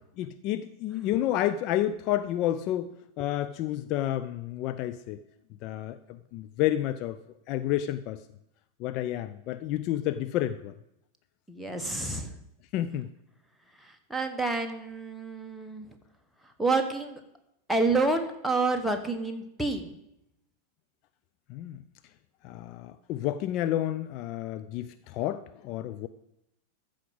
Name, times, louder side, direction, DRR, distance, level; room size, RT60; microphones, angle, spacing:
voice 1, 0.2-5.2 5.6-7.2 7.5-8.2 8.8-10.7 12.7-13.1 21.5-21.8 22.4-26.1, left 13 dB, 40° left, 11 dB, 0.5 m, -30 dB
voice 2, 11.5-12.4 13.8-15.9 16.6-17.2 17.7-19.9, right 3 dB, ahead, 4 dB, 1.4 m, -28 dB
14.0 x 5.0 x 7.9 m, 0.81 s
figure-of-eight pair, 90°, 0 cm